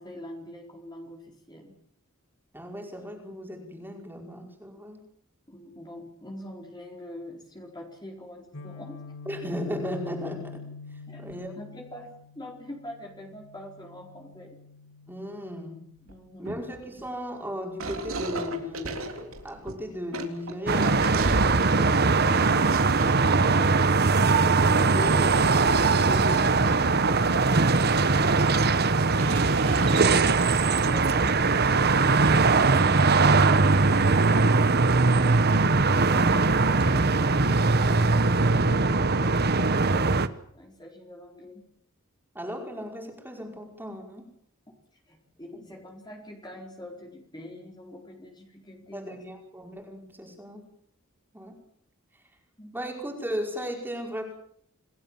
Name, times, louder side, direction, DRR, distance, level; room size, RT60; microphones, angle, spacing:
voice 1, 0.0-1.8 5.5-9.0 11.1-11.2 11.6-14.6 16.1-16.6 21.4-23.8 24.4-25.4 30.5-33.6 34.9-40.2 40.5-41.6 45.1-49.2 52.6-52.7, left 1 dB, 20° left, 0 dB, 4.4 m, -43 dB
voice 2, 2.5-5.0 9.2-10.6 10.9-11.5 15.1-15.9 16.4-21.1 24.9-25.3 25.9-27.6 42.3-44.3 45.5-45.8 48.9-50.6 51.3-51.6 52.1-52.2 52.7-54.3, equal, 10° right, 1 dB, 5.2 m, -36 dB
Guitar, 8.5-16.4, left 4 dB, 75° left, 2.5 m, -45 dB
sound 1, 16.1-16.2 16.5-17.2 17.8-21.8 22.3-24.2 24.6-24.8 27.1-27.2 27.6-27.7 28.2-28.3 29.1-30.6, right 2 dB, 70° right, 3.6 m, -36 dB
sound 2, 20.7-40.3, right 3 dB, 50° right, 1.2 m, -21 dB
28.5 x 18.0 x 7.6 m, 0.69 s
head